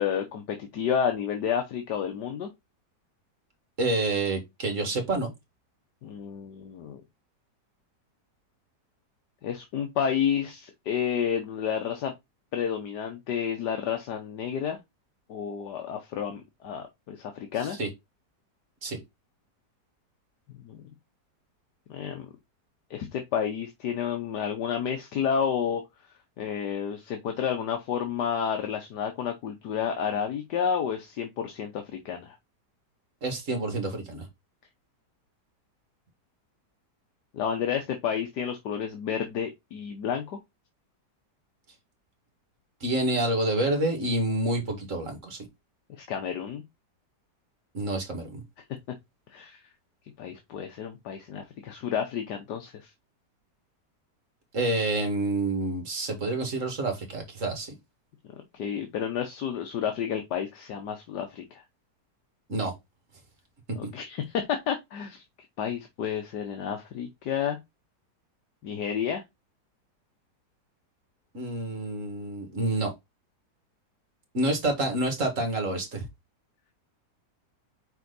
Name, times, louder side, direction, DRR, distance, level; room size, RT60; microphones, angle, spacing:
voice 1, 0.0-2.5 6.0-7.0 9.4-12.1 12.5-14.8 15.3-17.8 20.5-20.9 21.9-22.3 22.9-25.8 26.4-32.4 37.3-40.4 46.0-46.6 49.3-49.6 50.2-52.9 58.5-61.6 63.7-65.2 65.6-67.6 68.6-69.2, left 8 dB, 75° left, 1.6 m, -30 dB
voice 2, 3.8-5.3 17.8-17.9 18.8-19.0 33.2-34.3 42.8-45.5 47.7-48.4 54.5-57.7 62.5-62.7 71.3-72.9 74.3-76.0, right 2 dB, 50° right, 2.3 m, -28 dB
5.7 x 4.5 x 4.0 m
omnidirectional pair, 1.8 m